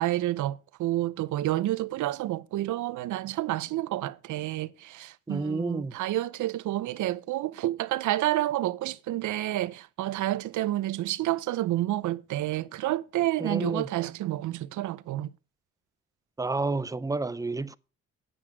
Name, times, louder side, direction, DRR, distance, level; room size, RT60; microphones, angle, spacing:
voice 1, 0.0-15.3, right 15 dB, 75° right, 0.7 m, -29 dB
voice 2, 5.3-5.9 13.4-13.9 16.4-17.8, right 3 dB, 10° right, 0.5 m, -30 dB
9.7 x 7.6 x 6.0 m
cardioid pair, 90°, 30 cm